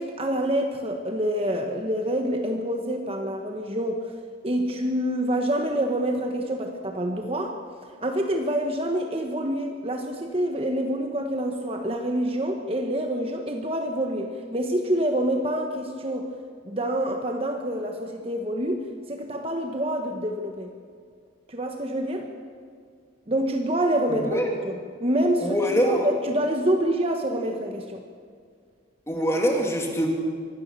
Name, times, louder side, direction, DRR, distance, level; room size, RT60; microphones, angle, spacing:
voice 1, 0.0-4.0 4.4-7.6 8.0-16.3 16.6-20.7 21.5-22.3 23.3-28.0, right 1 dB, 30° right, 3 dB, 1.4 m, -27 dB
voice 2, 24.1-24.5 25.4-26.1 29.1-30.1, equal, 15° left, 0 dB, 3.0 m, -24 dB
24.5 x 17.0 x 6.9 m, 2.1 s
head